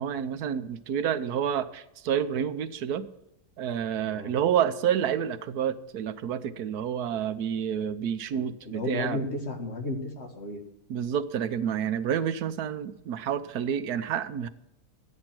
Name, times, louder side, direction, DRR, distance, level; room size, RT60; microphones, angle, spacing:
voice 1, 0.0-3.1 3.6-9.2 10.9-14.5, right 9 dB, 85° right, 11 dB, 1.3 m, -29 dB
voice 2, 8.3-10.6, left 2 dB, 45° left, 2 dB, 2.1 m, -34 dB
13.0 x 9.7 x 6.0 m, 0.81 s
omnidirectional pair, 1.6 m